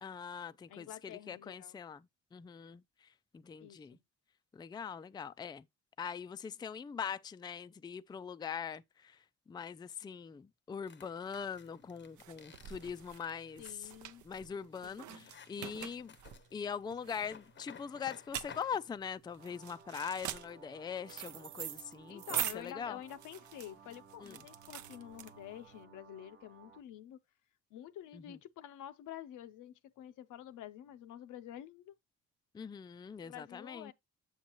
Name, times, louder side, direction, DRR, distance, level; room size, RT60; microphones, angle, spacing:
voice 1, 0.0-2.1 2.3-2.8 3.3-4.0 4.5-5.7 6.0-9.2 9.5-13.6 14.2-16.2 16.5-23.0 24.2-24.4 28.1-28.3 32.5-33.9, left 7 dB, 15° left, 0.3 m, -42 dB
voice 2, 0.7-1.8 3.6-4.0 13.6-14.2 14.8-15.3 22.1-27.2 27.7-32.0 33.2-33.9, left 11 dB, 80° left, 0.7 m, -49 dB
sound 1, 10.9-18.8, left 7 dB, 40° left, 0.7 m, -56 dB
sound 2, 11.4-25.7, right 12 dB, 75° right, 0.6 m, -44 dB
sound 3, 19.4-26.8, right 5 dB, 35° right, 0.9 m, -58 dB
7.3 x 7.2 x 2.9 m
cardioid pair, 90°, 30 cm